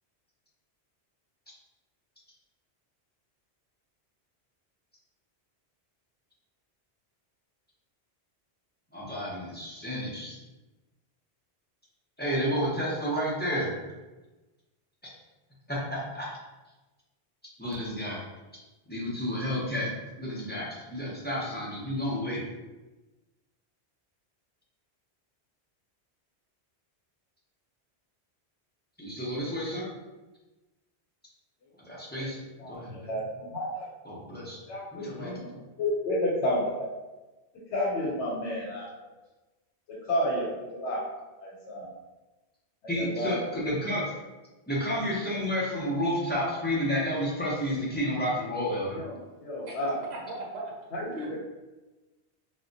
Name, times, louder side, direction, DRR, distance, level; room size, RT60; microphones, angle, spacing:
voice 1, 8.9-10.4 12.2-13.7 15.7-16.3 17.6-18.2 18.9-19.9 20.2-22.4 29.0-29.9 31.8-32.4 32.7-33.1 34.1-34.6 34.9-35.6 42.9-44.0 44.7-49.0, equal, 15° left, -7 dB, 0.5 m, -31 dB
voice 2, 32.1-33.9 34.7-35.5 35.8-36.9 37.7-38.9 39.9-41.0 41.4-41.9 42.8-43.3 48.9-50.0 50.9-51.4, left 1 dB, 90° left, -4 dB, 0.9 m, -31 dB
voice 3, 50.0-51.4, right 1 dB, 75° right, -2 dB, 0.9 m, -38 dB
2.2 x 2.1 x 3.8 m, 1.1 s
omnidirectional pair, 1.1 m